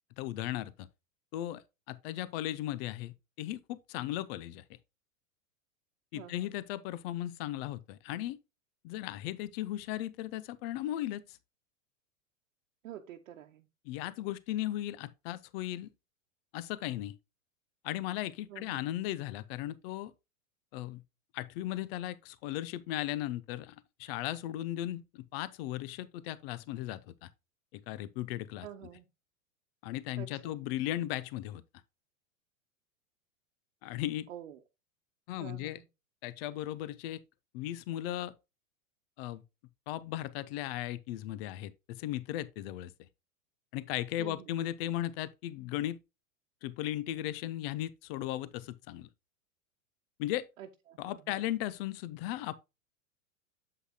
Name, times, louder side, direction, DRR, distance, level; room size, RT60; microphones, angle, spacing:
voice 1, 0.2-0.9 1.3-1.6 1.9-4.6 6.1-8.4 8.8-11.4 13.8-15.9 16.5-17.1 17.8-20.1 20.7-21.0 21.3-27.3 27.7-28.7 29.8-31.6 33.8-34.3 35.3-35.8 36.2-37.2 37.5-38.3 39.2-39.4 39.9-43.1 43.7-46.0 46.6-49.1 50.2-50.5 51.0-52.6, left 14 dB, 45° left, 0.7 m, -36 dB
voice 2, 6.1-6.5 12.8-13.7 18.5-18.8 28.6-29.0 30.2-30.6 34.3-34.6 35.4-35.9 44.2-44.6 50.6-51.5, right 11 dB, 70° right, 1.1 m, -48 dB
8.1 x 7.8 x 2.2 m
hypercardioid pair, 100°, 40 cm